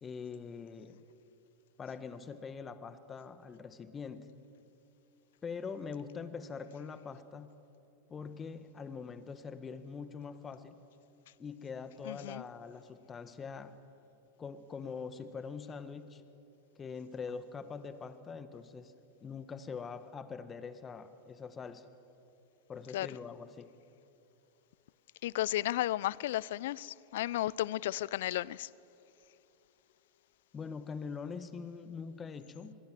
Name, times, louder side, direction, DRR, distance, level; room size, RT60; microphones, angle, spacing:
voice 1, 0.0-1.1 1.8-4.3 5.4-7.6 8.1-10.8 11.4-13.7 14.4-16.2 16.8-18.9 19.2-21.9 22.7-23.7 30.5-32.7, left 5 dB, 25° left, 1.5 m, -43 dB
voice 2, 12.1-12.4 22.9-23.1 25.2-28.7, left 14 dB, 70° left, 0.5 m, -33 dB
26.0 x 21.5 x 7.6 m
hypercardioid pair, 100°, 0 cm